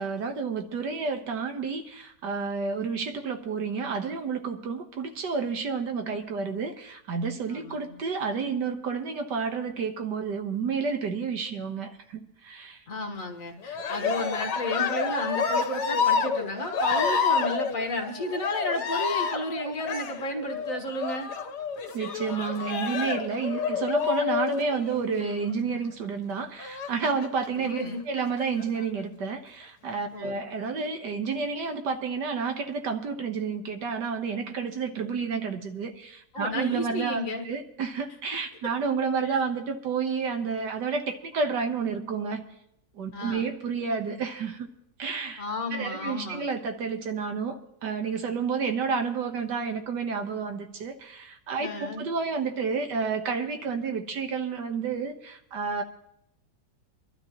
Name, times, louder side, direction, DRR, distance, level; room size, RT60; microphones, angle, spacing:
voice 1, 0.0-12.8 21.9-27.8 28.1-42.4 42.9-44.7 45.0-45.4 45.7-55.8, right 5 dB, 75° right, 6 dB, 1.7 m, -30 dB
voice 2, 7.5-8.0 12.9-21.3 27.6-28.0 30.1-30.4 36.3-37.5 39.2-39.4 43.1-43.5 45.4-46.4 51.6-52.1, left 1 dB, 50° left, 3 dB, 1.7 m, -33 dB
Cheering, 13.6-25.3 26.6-27.5 28.2-28.8, left 5 dB, 70° left, 1.6 m, -29 dB
25.0 x 12.5 x 2.9 m, 0.75 s
omnidirectional pair, 1.9 m